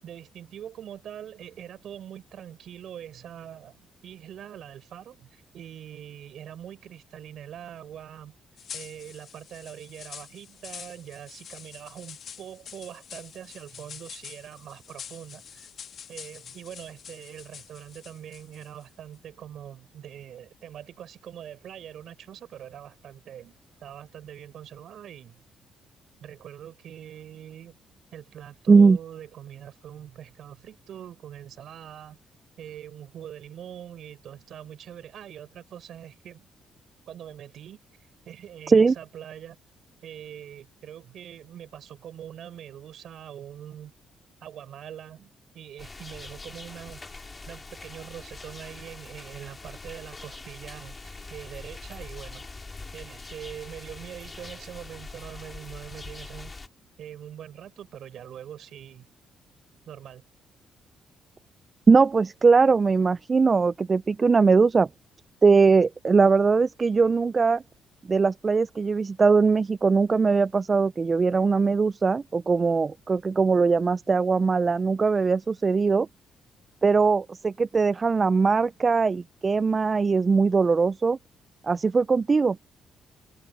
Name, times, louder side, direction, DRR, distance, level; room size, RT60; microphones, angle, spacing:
voice 1, 0.0-8.3 8.7-15.7 16.1-25.4 26.2-27.7 28.1-32.2 32.6-36.5 37.1-37.8 38.2-39.6 40.0-43.9 44.4-45.3 45.5-47.0 47.5-52.4 52.9-56.5 57.0-59.1 59.9-60.2, right 10 dB, 70° right, 6.8 m, -43 dB
sound 1, 8.6-18.8, left 8 dB, 60° left, 2.5 m, -45 dB
sound 2, 45.8-56.7, left 3 dB, 25° left, 4.8 m, -43 dB
voice 2, 61.9-64.9 65.4-67.6 68.0-76.1 76.8-81.2 81.6-82.6, right 4 dB, 35° right, 0.3 m, -21 dB
cardioid pair, 90°, 0 cm